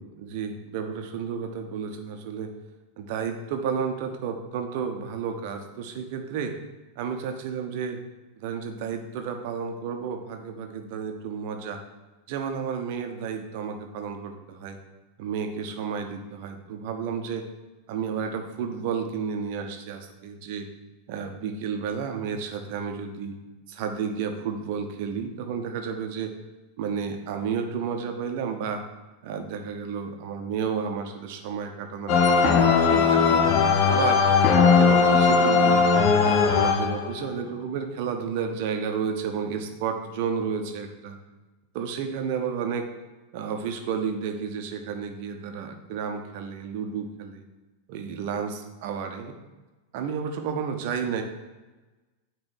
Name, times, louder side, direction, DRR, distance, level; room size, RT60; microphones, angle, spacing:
voice 1, 0.0-2.5 3.0-6.6 7.0-8.0 8.4-11.8 12.3-14.8 15.2-17.5 17.9-20.7 21.1-23.4 23.7-26.3 26.8-28.8 29.2-33.4 33.9-34.2 34.5-35.8 36.2-41.2 41.7-42.9 43.3-47.4 47.9-49.3 49.9-51.2, right 6 dB, 50° right, 5 dB, 0.9 m, -31 dB
sound 1, 32.1-37.3, left 5 dB, 40° left, 0.7 m, -19 dB
8.6 x 3.3 x 6.2 m, 1.2 s
figure-of-eight pair, 90°, 0 cm